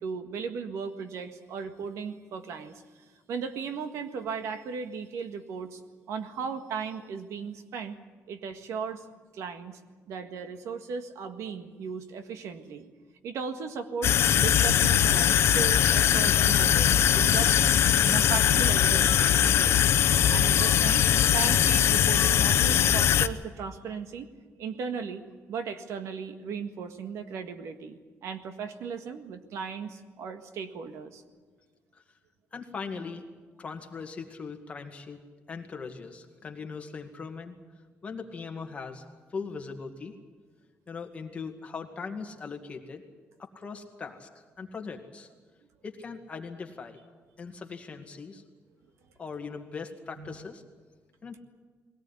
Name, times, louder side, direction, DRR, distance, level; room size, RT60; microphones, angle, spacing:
voice 1, 0.0-2.8 3.3-5.8 6.1-8.0 8.3-9.0 9.3-9.8 10.1-12.8 13.2-16.9 17.1-19.8 20.3-21.1 21.3-24.3 24.6-25.2 25.5-31.2 50.2-50.4, right 6 dB, 80° right, 8 dB, 1.8 m, -36 dB
sound 1, 14.0-23.3, left 9 dB, 60° left, 0.8 m, -21 dB
voice 2, 32.5-33.2 33.6-35.2 35.5-37.6 38.0-39.1 39.3-40.1 40.9-43.0 43.4-44.3 44.6-45.3 45.8-47.0 47.4-48.4 49.2-50.6 51.2-51.4, left 5 dB, 25° left, 4 dB, 2.0 m, -39 dB
21.5 x 18.0 x 9.6 m, 1.4 s
cardioid pair, 175°, 5 cm